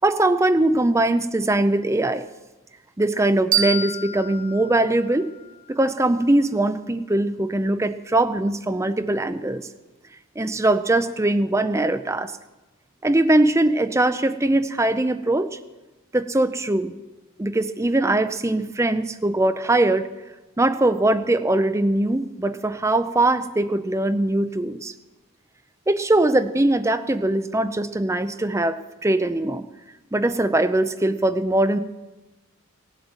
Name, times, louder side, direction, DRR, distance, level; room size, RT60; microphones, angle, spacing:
voice 1, 0.0-2.2 3.0-5.3 5.7-9.7 10.4-12.3 13.0-15.5 16.1-16.9 17.4-20.1 20.6-24.9 25.9-29.7 30.1-31.8, right 2 dB, 15° right, 11 dB, 0.5 m, -21 dB
sound 1, 3.5-6.3, right 5 dB, 40° right, 1.4 m, -28 dB
18.0 x 8.0 x 8.0 m, 1.1 s
head